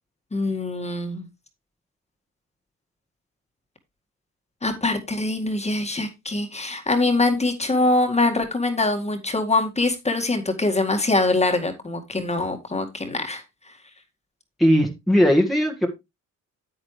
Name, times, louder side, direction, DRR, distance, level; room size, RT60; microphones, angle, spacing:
voice 1, 0.3-1.3 4.6-13.4, left 2 dB, 20° left, 2.0 m, -23 dB
voice 2, 14.6-15.9, equal, ahead, 1.7 m, -18 dB
8.9 x 8.6 x 3.2 m
cardioid pair, 90°, 30 cm